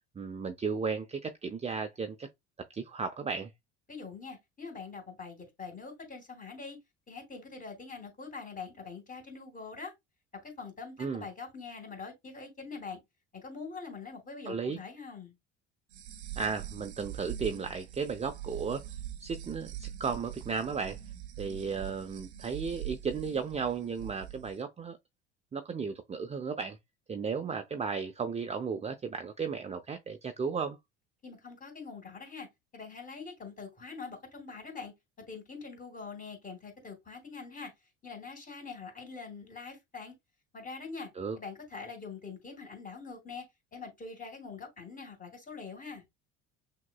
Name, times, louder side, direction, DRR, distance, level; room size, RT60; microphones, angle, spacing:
voice 1, 0.2-2.3 2.7-3.5 11.0-11.3 14.5-14.8 16.4-18.9 19.2-21.0 21.4-25.0 25.5-26.8 27.1-30.8 41.2-41.4, right 5 dB, 20° right, 0.6 m, -34 dB
voice 2, 3.9-6.8 7.1-9.9 10.3-13.0 13.3-15.3 31.2-34.9 35.3-37.7 38.0-40.1 40.5-41.1 41.4-46.0, left 4 dB, 25° left, 2.8 m, -44 dB
sound 1, 15.9-24.5, right 11 dB, 85° right, 0.8 m, -43 dB
5.9 x 2.9 x 2.2 m
hypercardioid pair, 65°, 33 cm